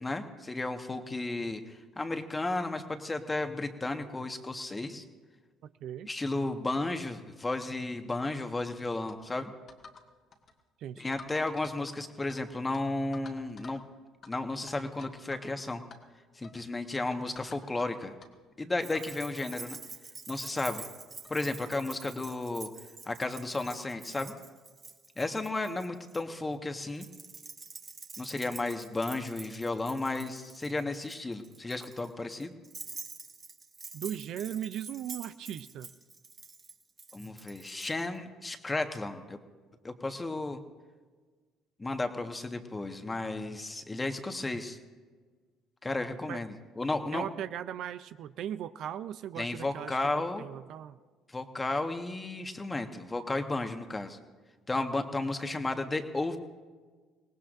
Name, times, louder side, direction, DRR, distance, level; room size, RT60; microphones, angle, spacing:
voice 1, 0.0-5.0 6.0-9.5 11.0-13.8 14.3-15.8 16.3-18.1 18.6-19.8 20.3-20.9 21.3-22.7 23.0-24.4 25.2-27.1 28.2-32.5 37.1-39.4 39.8-40.6 41.8-44.8 45.8-47.3 49.4-50.4 51.3-54.2 54.7-56.4, left 2 dB, 20° left, 6 dB, 1.4 m, -33 dB
sound 1, 9.1-9.2 9.7-10.1 10.3-10.5 11.1-12.4 12.7-12.8 13.1-13.8 14.2-14.3 14.7-15.5 15.8-16.0 16.4-16.6 17.1-17.9 18.2-18.3 18.9-19.1 19.5-19.6 20.3-20.4 20.6-20.7 21.2-21.4 22.3-22.4 23.2-23.4, left 4 dB, 50° left, 1.8 m, -51 dB
voice 2, 10.8-11.2 33.9-35.9 46.3-46.4 47.1-51.0, right 10 dB, 65° right, 13 dB, 0.4 m, -38 dB
Keys jangling, 18.8-26.2 27.0-37.9, right 4 dB, 35° right, 1.4 m, -47 dB
24.0 x 18.5 x 2.6 m, 1.4 s
hypercardioid pair, 65°, 0 cm